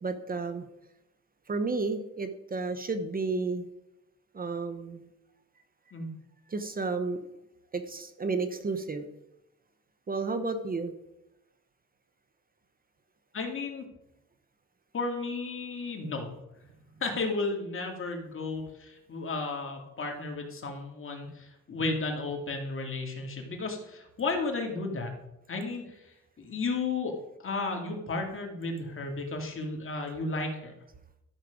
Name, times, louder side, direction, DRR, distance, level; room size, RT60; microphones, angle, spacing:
voice 1, 0.0-0.6 1.5-3.7 4.3-5.1 6.5-7.2 7.7-9.1 10.1-10.9, right 3 dB, 30° right, 9 dB, 1.0 m, -32 dB
voice 2, 13.3-13.8 14.9-16.3 17.0-25.1 25.5-26.0 26.4-27.2 27.4-30.7, left 3 dB, 45° left, 2 dB, 2.5 m, -33 dB
13.0 x 6.5 x 5.2 m, 0.87 s
cardioid pair, 90°, 30 cm